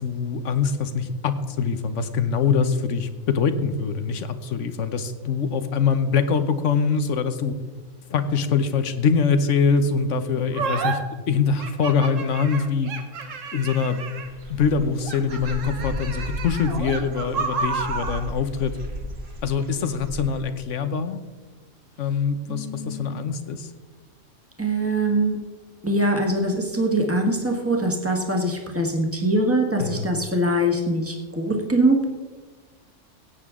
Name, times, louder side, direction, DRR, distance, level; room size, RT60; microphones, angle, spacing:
voice 1, 0.0-7.5 8.1-11.0 11.3-12.9 13.5-14.0 14.5-18.7 19.4-21.2 22.0-23.7 29.8-30.1, left 5 dB, 75° left, 10 dB, 1.2 m, -23 dB
sound 1, 10.5-11.0 11.6-14.4 15.0-18.3, right 5 dB, 85° right, 1.5 m, -30 dB
Dog / Bird, 14.1-20.4, equal, 55° right, 1.9 m, -35 dB
voice 2, 22.5-23.2 24.6-25.4 25.8-32.0, right 1 dB, 10° right, 2 dB, 1.5 m, -23 dB
16.5 x 8.8 x 3.7 m, 1.3 s
omnidirectional pair, 1.3 m